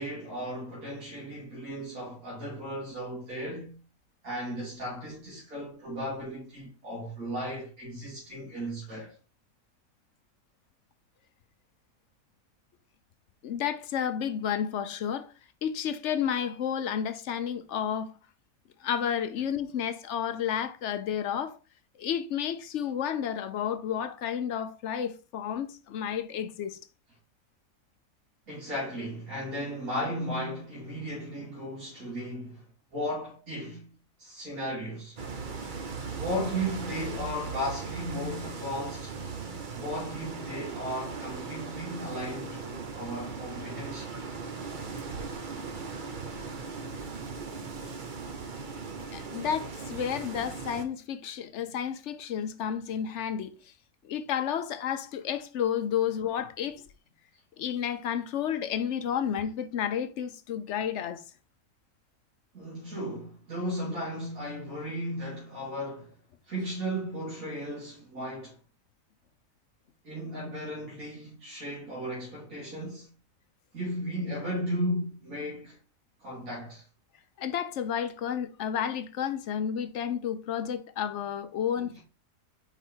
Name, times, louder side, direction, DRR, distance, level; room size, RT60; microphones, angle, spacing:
voice 1, 0.0-3.8 4.2-9.1 28.5-32.6 32.9-33.9 34.2-35.2 36.1-39.1 39.7-44.1 62.5-66.1 66.5-68.6 70.0-73.1 73.7-75.8 76.2-76.8, equal, 70° right, 3.1 m, -35 dB
voice 2, 13.4-15.3 15.6-18.2 18.8-21.6 22.0-26.8 49.1-53.7 54.0-56.8 57.6-61.2 77.4-82.0, left 8 dB, 60° left, 0.9 m, -31 dB
sound 1, 35.2-50.8, right 4 dB, 40° right, 0.9 m, -38 dB
5.0 x 4.9 x 4.4 m
omnidirectional pair, 1.6 m